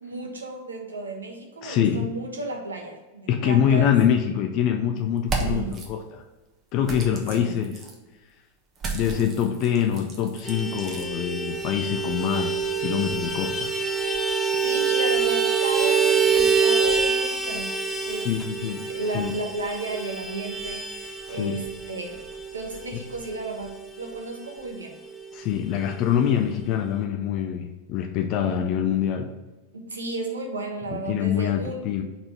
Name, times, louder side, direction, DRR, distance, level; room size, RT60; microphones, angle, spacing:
voice 1, 0.0-3.9 5.4-5.8 7.3-7.5 14.6-17.8 18.0-18.3 18.8-22.3 22.5-24.9 28.4-28.6 29.7-31.9, right 2 dB, 75° right, 1 dB, 1.2 m, -33 dB
voice 2, 1.6-2.1 3.3-6.2 6.7-7.8 8.9-13.7 18.1-19.3 21.3-21.6 25.3-29.3 30.9-32.0, left 9 dB, 40° left, 5 dB, 0.5 m, -25 dB
sound 1, 5.2-5.9 6.8-8.0 8.8-11.1, right 4 dB, 25° right, 1.1 m, -33 dB
Vehicle horn car horn honking, 10.5-24.4 24.6-24.8 25.1-25.2 25.5-26.2, right 5 dB, ahead, 0.6 m, -26 dB
4.3 x 4.3 x 5.2 m, 1.2 s
figure-of-eight pair, 90°, 0 cm